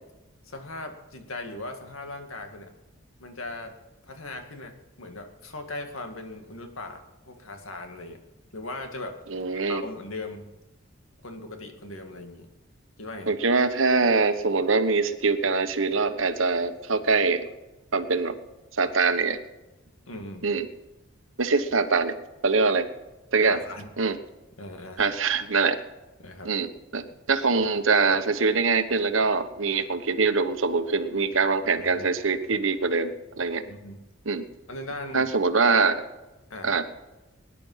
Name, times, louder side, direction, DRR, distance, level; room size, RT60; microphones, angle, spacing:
voice 1, 0.4-2.7 3.2-3.7 4.1-8.2 8.5-9.2 9.7-10.5 11.2-12.5 13.0-13.3 20.1-20.5 23.4-23.9 24.6-25.0 26.2-26.5 31.8-32.1 33.6-34.0 34.7-35.3 36.5-36.8, left 2 dB, 80° left, 5 dB, 2.1 m, -39 dB
voice 2, 9.3-9.8 13.3-17.4 17.9-18.3 18.8-19.4 20.4-20.7 21.4-22.1 22.4-22.9 23.3-23.6 24.0-24.2 25.0-25.8 26.4-33.6 34.3-34.4 35.1-36.0 36.6-36.8, right 4 dB, 70° right, 10 dB, 1.1 m, -23 dB
19.0 x 10.5 x 5.7 m, 1.1 s
head